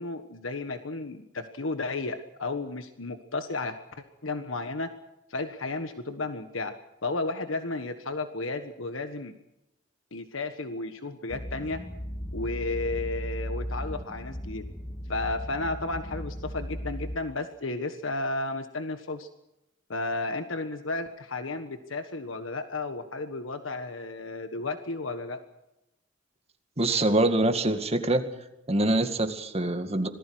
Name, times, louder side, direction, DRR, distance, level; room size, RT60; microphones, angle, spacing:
voice 1, 0.0-3.8 4.2-4.9 5.3-6.7 7.0-9.4 10.1-11.8 12.3-14.6 15.1-19.3 19.9-25.4, left 2 dB, 80° left, 8 dB, 1.4 m, -33 dB
sound 1, 11.3-17.2, equal, 15° left, 0.9 m, -36 dB
voice 2, 26.8-28.2 28.7-30.1, right 1 dB, 30° right, 7 dB, 2.1 m, -24 dB
26.0 x 19.0 x 6.3 m, 0.88 s
head